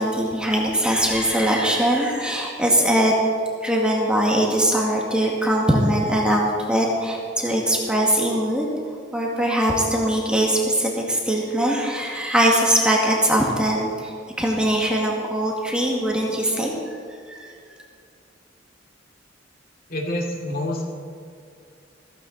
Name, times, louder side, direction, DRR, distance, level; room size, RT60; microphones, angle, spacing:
voice 1, 0.0-3.1 3.6-8.7 9.1-17.0 17.3-17.5, right 1 dB, 5° right, -2 dB, 2.1 m, -21 dB
voice 2, 19.9-20.8, left 1 dB, 50° left, 0 dB, 2.6 m, -27 dB
15.5 x 15.0 x 4.2 m, 2.3 s
head